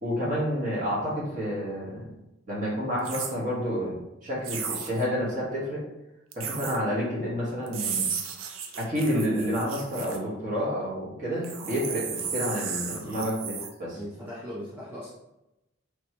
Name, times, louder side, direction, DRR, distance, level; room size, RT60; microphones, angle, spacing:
voice 1, 0.0-2.1 2.5-5.9 6.3-8.0 8.8-13.5 13.8-14.0, equal, 40° right, -6 dB, 1.3 m, -29 dB
sound 1, 3.0-3.3 4.4-5.0 6.3-6.8 7.7-10.2 11.4-13.7, right 6 dB, 75° right, 0.5 m, -34 dB
voice 2, 12.9-13.3 13.9-15.1, equal, 10° right, -8 dB, 0.7 m, -39 dB
3.4 x 2.9 x 2.9 m, 0.91 s
head